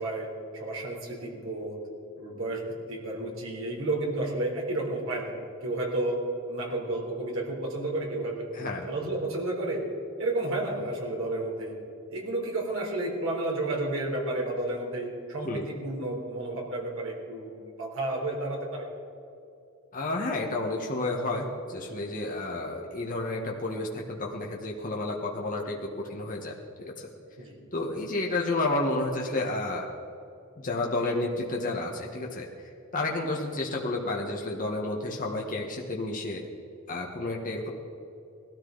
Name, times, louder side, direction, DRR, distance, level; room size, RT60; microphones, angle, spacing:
voice 1, 0.0-1.8 2.2-5.3 5.6-6.2 6.5-9.8 10.2-11.7 12.1-18.9 27.4-27.6, right 2 dB, 65° right, -1 dB, 3.6 m, -31 dB
voice 2, 8.5-8.9 15.4-15.7 19.9-27.1 27.7-29.9 30.6-32.5 32.9-36.4 36.9-37.7, left 2 dB, 40° left, -1 dB, 1.4 m, -31 dB
19.0 x 13.5 x 4.0 m, 2.7 s
head